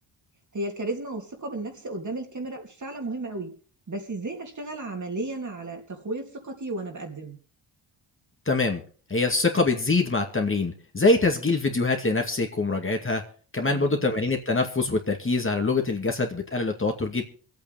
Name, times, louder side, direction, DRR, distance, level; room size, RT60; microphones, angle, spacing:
voice 1, 0.5-3.5 3.9-7.4 13.7-14.0, right 2 dB, 35° right, 2 dB, 3.2 m, -34 dB
voice 2, 8.5-8.8 9.1-13.2 13.5-17.2, left 3 dB, 25° left, 3 dB, 2.3 m, -24 dB
25.5 x 8.8 x 3.5 m, 0.40 s
cardioid pair, 80°, 47 cm